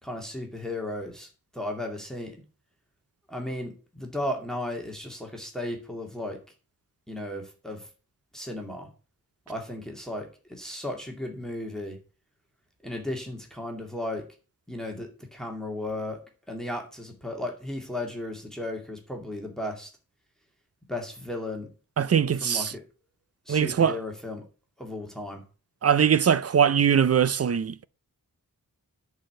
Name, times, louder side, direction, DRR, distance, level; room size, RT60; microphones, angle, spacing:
voice 1, 0.0-1.3 1.5-2.4 3.3-6.4 7.1-7.9 8.3-8.9 9.5-12.0 12.8-14.2 14.7-16.2 16.5-19.9 20.9-21.7 22.4-22.8 23.5-24.4 24.8-25.4, left 1 dB, ahead, 2.3 m, -35 dB
voice 2, 22.0-22.7 23.5-24.0 25.8-27.8, right 8 dB, 45° right, 0.5 m, -22 dB
10.5 x 4.9 x 7.5 m
wide cardioid pair, 130°, 36 cm